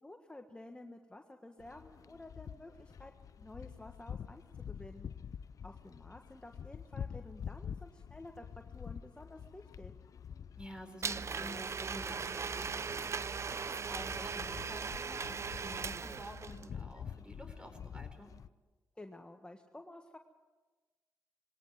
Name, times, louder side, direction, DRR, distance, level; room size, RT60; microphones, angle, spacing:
voice 1, 0.0-3.1 3.4-5.1 5.6-9.9 19.0-20.2, left 2 dB, 15° left, 4 dB, 1.6 m, -52 dB
sound 1, 1.6-18.5, left 7 dB, 60° left, 0.6 m, -48 dB
voice 2, 10.6-18.3, equal, 15° right, 7 dB, 4.4 m, -50 dB
Domestic sounds home sounds, 11.0-16.7, right 5 dB, 45° right, 0.6 m, -39 dB
21.0 x 18.0 x 7.6 m, 1.3 s
supercardioid pair, 50°, 6 cm